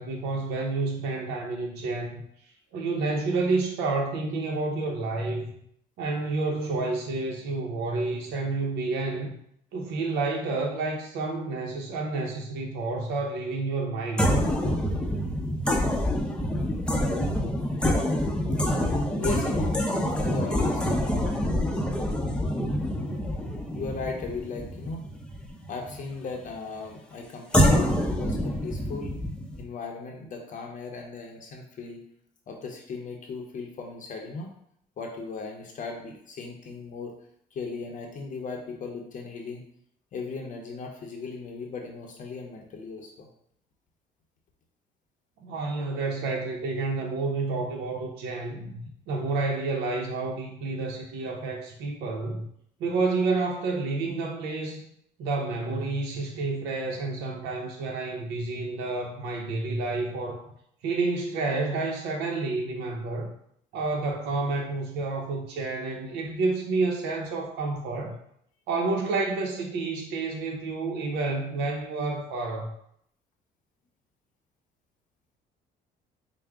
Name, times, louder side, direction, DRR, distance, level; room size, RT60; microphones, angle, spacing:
voice 1, 0.0-2.2 2.7-5.5 6.0-9.4 9.7-14.3 45.4-52.5 52.8-54.8 55.2-60.5 60.8-63.3 63.7-68.2 68.7-72.7, right 3 dB, 85° right, 0 dB, 0.6 m, -29 dB
sound 1, 14.2-26.0 27.5-29.6, equal, 5° left, 0.5 m, -26 dB
voice 2, 19.2-19.9 20.2-20.9 23.7-25.0 25.7-29.1 29.6-32.0 32.5-34.6 35.0-37.2 37.5-39.6 40.1-43.3, left 4 dB, 50° left, 2 dB, 0.6 m, -37 dB
4.7 x 2.1 x 3.4 m, 0.70 s
cardioid pair, 110°, 17 cm